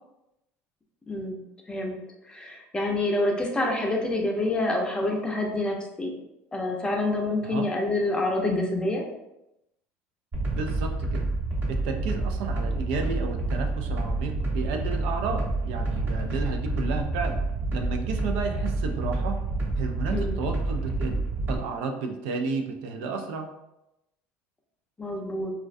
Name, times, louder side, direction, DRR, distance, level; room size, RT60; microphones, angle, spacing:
voice 1, 1.1-1.4 1.7-2.0 2.3-6.1 6.5-9.0 20.1-20.4 25.0-25.5, left 2 dB, 15° left, 0 dB, 0.5 m, -27 dB
sound 1, 10.3-21.6, right 2 dB, 35° right, 0.8 m, -28 dB
voice 2, 10.5-11.3 11.7-17.3 17.7-19.4 19.8-23.5, right 4 dB, 85° right, 4 dB, 0.3 m, -32 dB
2.4 x 2.1 x 2.5 m, 0.88 s
supercardioid pair, 110°, 6 cm